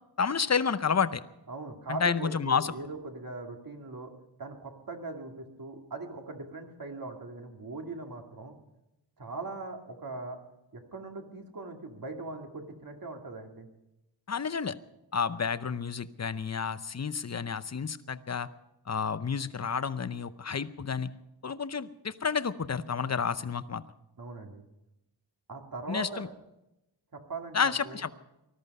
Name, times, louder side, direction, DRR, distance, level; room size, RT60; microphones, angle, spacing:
voice 1, 0.2-1.2 1.9-2.7 14.3-14.8 15.1-18.5 18.9-21.1 21.4-23.8 25.9-26.3 27.5-28.1, left 6 dB, 35° left, 13 dB, 0.7 m, -30 dB
voice 2, 1.5-4.1 4.4-8.6 9.2-10.4 10.7-13.7 24.2-24.6 25.5-26.3 27.1-28.0, right 3 dB, 50° right, 3 dB, 2.4 m, -40 dB
19.5 x 13.0 x 5.4 m, 0.91 s
wide cardioid pair, 105°, 45 cm